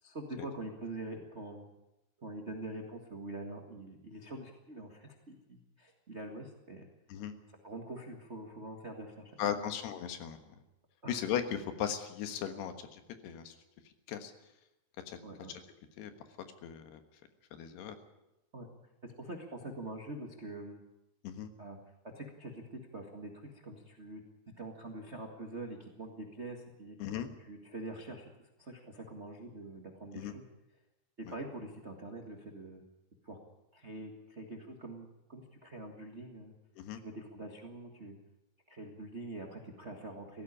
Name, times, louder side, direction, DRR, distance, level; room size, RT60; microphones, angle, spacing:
voice 1, 0.0-1.6 2.2-6.9 7.6-9.7 11.0-11.3 15.2-15.5 18.5-18.7 19.0-20.8 21.6-21.8 22.1-24.2 24.6-27.1 27.4-30.5 31.2-32.8 33.2-33.4 33.7-36.5 37.0-38.2 38.7-40.4, right 2 dB, 50° right, 2 dB, 0.7 m, -45 dB
voice 2, 9.4-10.4 11.1-13.6 14.1-14.3 15.1-15.2 16.0-16.1 16.6-17.0 17.5-18.0 21.2-21.5 27.0-27.3 30.1-30.3 31.3-31.4 36.8-37.0, left 9 dB, 80° left, 8 dB, 3.5 m, -37 dB
17.5 x 15.5 x 9.9 m, 0.95 s
omnidirectional pair, 4.6 m